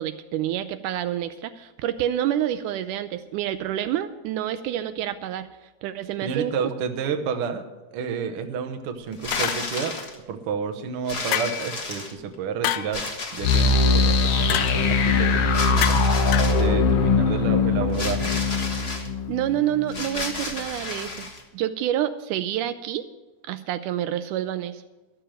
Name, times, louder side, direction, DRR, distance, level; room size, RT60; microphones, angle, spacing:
voice 1, 0.0-5.5 5.8-6.6 17.8-17.9 19.3-21.3 21.5-23.0 23.5-24.8, right 11 dB, 80° right, 11 dB, 2.0 m, -28 dB
voice 2, 6.2-7.6 7.9-9.9 10.3-13.0 13.3-16.0 16.4-18.3, right 6 dB, 65° right, 6 dB, 1.5 m, -30 dB
sound 1, 9.1-10.2 11.1-12.3 12.9-13.9 15.5-16.7 17.9-19.1 19.9-21.4, left 3 dB, 40° left, 0.8 m, -32 dB
sound 2, 9.3-10.0 11.3-11.8 12.6-13.0 14.5-14.8 15.8-16.1 16.3-16.6, left 12 dB, 85° left, 1.5 m, -27 dB
sound 3, 13.4-20.2, left 4 dB, 65° left, 1.6 m, -21 dB
13.0 x 6.8 x 8.9 m, 1.1 s
omnidirectional pair, 3.7 m